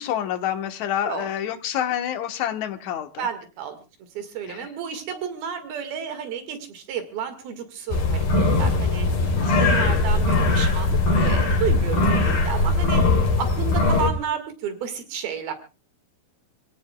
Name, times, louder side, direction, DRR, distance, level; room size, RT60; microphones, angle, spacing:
voice 1, 0.0-3.3 4.5-4.7 9.4-10.1, left 10 dB, 60° left, 7 dB, 2.3 m, -28 dB
voice 2, 3.2-3.8 4.2-8.3 8.6-9.1 9.6-13.0 13.4-15.5, right 8 dB, 80° right, 8 dB, 3.7 m, -31 dB
sound 1, 7.9-14.1, left 3 dB, 85° left, 5.3 m, -20 dB
27.5 x 17.0 x 2.3 m, 0.31 s
omnidirectional pair, 4.3 m